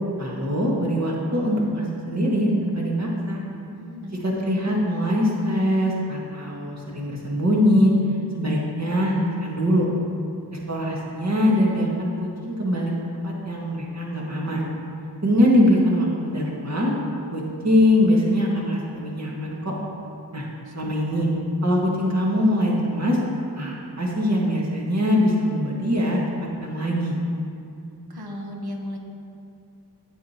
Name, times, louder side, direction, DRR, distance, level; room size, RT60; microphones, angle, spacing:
voice 1, 0.2-3.4 4.2-7.9 8.3-9.9 10.7-14.6 15.2-16.9 17.3-19.7 20.3-20.5 20.7-21.3 21.6-23.2 23.6-26.2 26.6-27.2, equal, 45° right, -3 dB, 1.7 m, -22 dB
voice 2, 3.7-4.2 20.6-21.3 28.1-29.0, left 1 dB, 75° right, 1 dB, 1.1 m, -36 dB
9.1 x 7.7 x 2.9 m, 2.6 s
cardioid pair, 45°, 39 cm